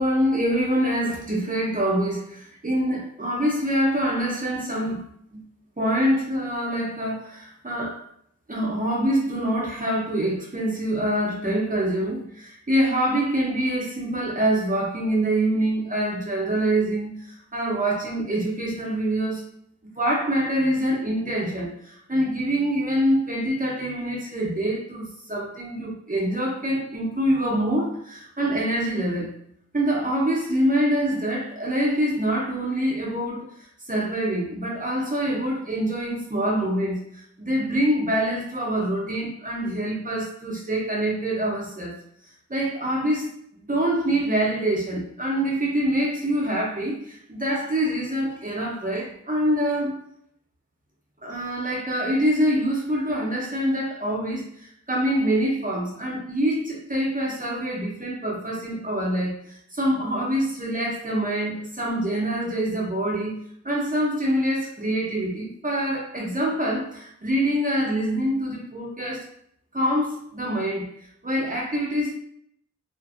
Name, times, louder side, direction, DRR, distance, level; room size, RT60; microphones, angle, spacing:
voice 1, 0.0-5.0 5.3-5.4 5.8-8.0 8.5-19.4 19.8-29.3 29.7-33.5 33.9-42.0 42.5-43.3 43.6-50.0 51.2-63.4 63.6-69.3 69.7-70.9 71.2-72.1, right 1 dB, 30° right, -3 dB, 0.7 m, -25 dB
2.5 x 2.4 x 2.4 m, 0.67 s
wide cardioid pair, 85°, 29 cm